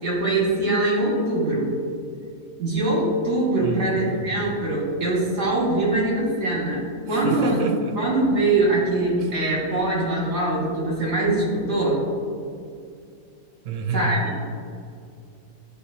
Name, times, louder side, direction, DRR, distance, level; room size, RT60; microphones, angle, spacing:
voice 1, 0.0-1.7 2.6-7.6 8.0-12.0 13.9-14.3, right 2 dB, 50° right, -4 dB, 1.9 m, -23 dB
voice 2, 3.6-4.4 7.1-8.0 13.6-14.2, right 4 dB, 70° right, 5 dB, 0.9 m, -28 dB
9.2 x 4.1 x 2.7 m, 2.3 s
omnidirectional pair, 1.5 m